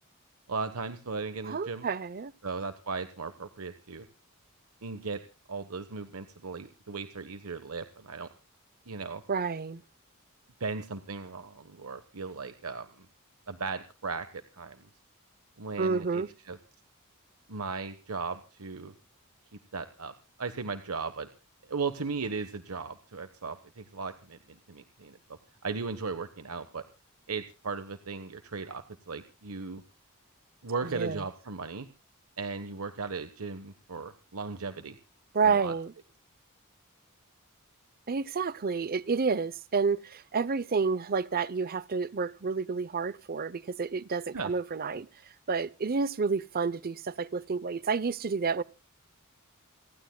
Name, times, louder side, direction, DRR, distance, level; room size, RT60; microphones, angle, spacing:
voice 1, 0.5-1.8 2.4-4.1 4.8-5.2 5.5-8.3 8.9-9.2 10.6-13.1 13.5-14.9 15.6-16.6 17.5-18.9 19.7-20.1 20.4-21.3 21.7-24.4 24.7-25.2 25.6-26.8 27.3-29.8 30.6-31.9 32.4-35.0 35.4-35.7 44.3-44.5, right 4 dB, 80° right, 1.1 m, -37 dB
voice 2, 1.4-2.3 9.3-9.8 15.8-16.3 30.8-31.2 35.3-35.9 38.1-45.1 45.5-48.6, right 5 dB, 45° right, 0.6 m, -29 dB
29.0 x 12.0 x 2.2 m
head